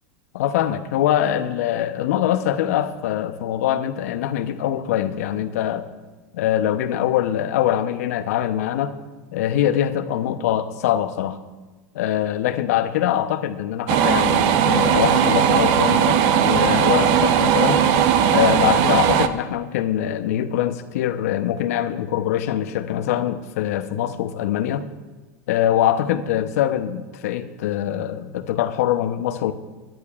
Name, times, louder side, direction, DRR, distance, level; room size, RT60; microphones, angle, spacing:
voice 1, 0.3-5.9 6.3-8.9 9.3-11.4 11.9-17.8 18.3-24.9 25.5-29.5, left 11 dB, 70° left, 11 dB, 0.8 m, -23 dB
sound 1, 13.9-19.3, right 8 dB, 60° right, 0.8 m, -18 dB
19.5 x 12.0 x 2.5 m, 1.2 s
hypercardioid pair, 90°, 9 cm